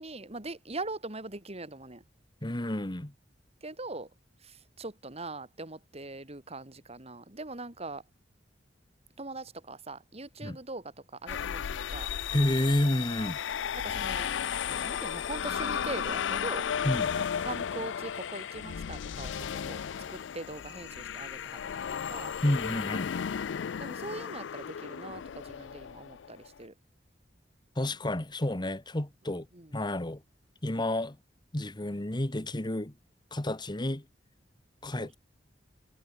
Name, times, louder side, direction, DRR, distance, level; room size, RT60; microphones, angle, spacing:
voice 1, 0.0-2.0 3.6-4.1 4.4-8.0 9.2-12.1 13.7-14.3 14.7-19.8 20.1-22.3 23.8-26.7 29.3-29.7 35.0-35.2, right 2 dB, 35° right, 3.1 m, -42 dB
voice 2, 2.4-3.1 10.4-10.6 12.3-13.4 16.8-17.1 22.4-23.1 27.8-29.5 29.7-30.2 30.6-31.2 31.5-32.9 33.3-34.0 34.8-35.2, left 1 dB, 25° left, 1.4 m, -30 dB
sound 1, 11.3-26.5, left 8 dB, 75° left, 0.4 m, -34 dB
head